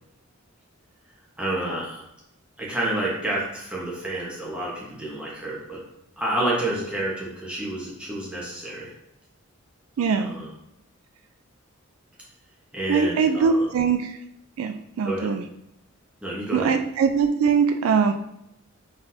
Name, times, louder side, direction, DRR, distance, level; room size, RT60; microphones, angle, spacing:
voice 1, 1.4-2.0 2.6-5.8 6.2-8.9 10.2-10.5 12.7-13.7 15.0-15.3 16.2-16.7, right 1 dB, 5° right, -6 dB, 1.1 m, -29 dB
voice 2, 10.0-10.3 12.9-14.2 14.6-15.4 16.5-18.1, right 5 dB, 80° right, 8 dB, 0.3 m, -22 dB
4.0 x 4.0 x 2.7 m, 0.81 s
head